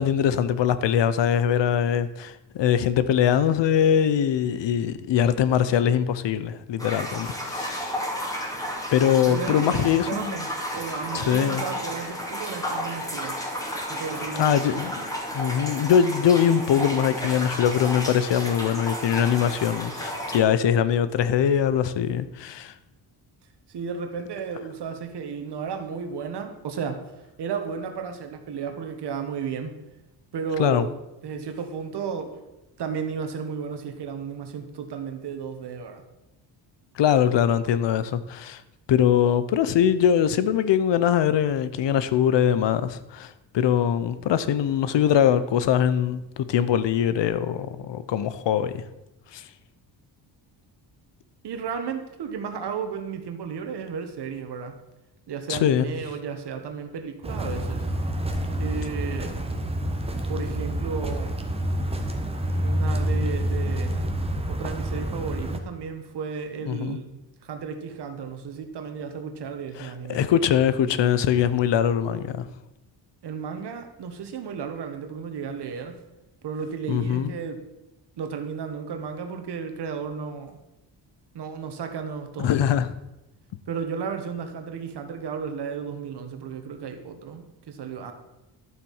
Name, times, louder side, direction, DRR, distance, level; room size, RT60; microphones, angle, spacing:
voice 1, 0.0-7.9 8.9-10.4 11.1-11.6 14.4-14.9 15.3-22.7 30.6-30.9 37.0-38.6 38.9-48.8 49.3-49.4 55.5-55.9 66.7-67.0 69.8-72.5 76.9-77.3 82.4-82.9, left 9 dB, 75° left, 0.8 m, -22 dB
sound 1, 6.8-20.4, equal, 10° left, 2.2 m, -32 dB
voice 2, 9.0-13.4 13.9-14.8 23.7-27.0 27.4-29.8 30.3-30.9 31.2-32.3 32.8-36.0 51.4-54.8 55.3-57.9 58.6-59.4 60.3-61.3 62.6-64.0 64.5-70.3 73.2-76.0 76.4-77.6 78.2-80.6 81.3-82.8 83.7-88.1, right 6 dB, 65° right, 1.5 m, -33 dB
sound 2, 57.2-65.6, right 1 dB, 15° right, 1.1 m, -28 dB
12.0 x 7.5 x 5.6 m
wide cardioid pair, 145°, 44 cm